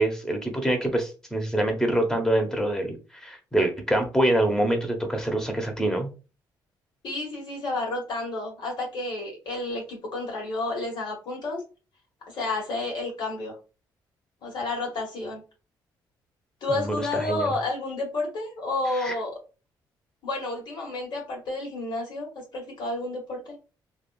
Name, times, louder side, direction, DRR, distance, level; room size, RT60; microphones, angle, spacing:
voice 1, 0.0-6.1 16.7-17.5 19.0-19.2, right 1 dB, 5° left, 4 dB, 1.0 m, -25 dB
voice 2, 7.0-11.6 12.3-13.5 14.4-15.4 16.6-19.3 20.2-23.5, left 2 dB, 65° left, -1 dB, 1.6 m, -31 dB
3.5 x 2.4 x 2.3 m, 0.32 s
cardioid pair, 85°, 9 cm